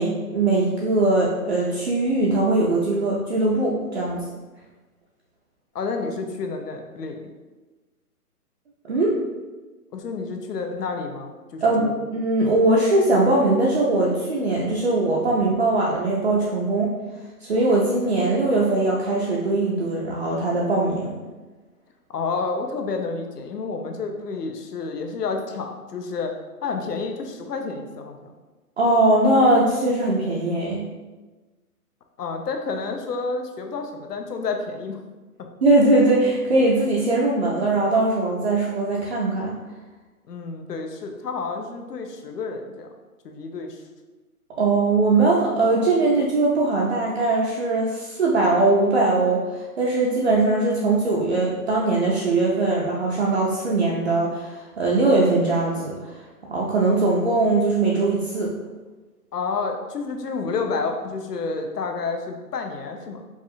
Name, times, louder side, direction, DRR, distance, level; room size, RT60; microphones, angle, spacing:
voice 1, 0.0-4.2 8.9-9.2 11.6-11.9 12.1-16.9 17.4-21.2 28.8-30.8 35.6-39.5 44.6-56.1 56.5-58.5, right 2 dB, 45° right, -4 dB, 0.5 m, -21 dB
voice 2, 5.7-7.2 9.9-11.9 22.1-26.3 26.6-28.3 32.2-35.0 40.3-42.9 43.2-43.8 59.3-63.2, left 4 dB, 85° left, 4 dB, 0.8 m, -30 dB
4.7 x 2.4 x 2.6 m, 1.2 s
hypercardioid pair, 165°, 47 cm